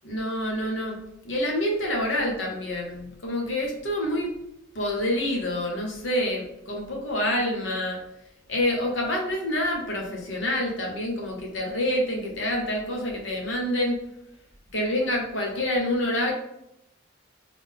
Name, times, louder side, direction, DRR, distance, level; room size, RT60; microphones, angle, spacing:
voice 1, 0.0-1.0 1.2-4.3 4.7-8.0 8.5-14.0 14.7-16.3, left 1 dB, 75° left, 0 dB, 1.1 m, -27 dB
3.7 x 3.5 x 3.6 m, 0.80 s
head